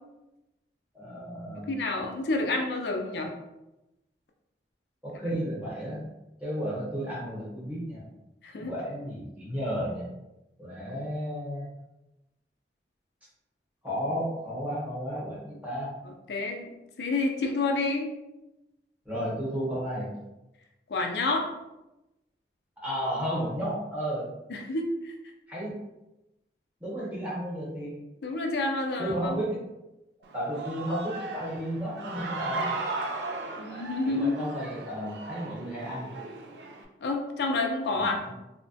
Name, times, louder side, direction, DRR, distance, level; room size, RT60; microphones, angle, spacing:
voice 1, 0.9-1.7 5.0-6.0 6.4-8.0 8.6-10.1 10.6-11.7 13.8-15.9 19.0-20.1 22.8-24.3 25.5-25.8 26.8-27.9 29.0-29.6 30.3-32.7 34.0-36.1 37.9-38.2, equal, 10° right, -7 dB, 0.9 m, -33 dB
voice 2, 1.5-3.3 5.3-5.4 8.4-8.7 16.3-16.7 17.0-18.1 20.9-21.5 24.5-25.1 28.2-29.4 33.6-34.4 37.0-38.2, left 3 dB, 70° left, 2 dB, 0.4 m, -29 dB
Human voice / Cheering, 30.2-36.8, right 3 dB, 75° right, 0.4 m, -37 dB
2.8 x 2.1 x 2.7 m, 0.96 s
head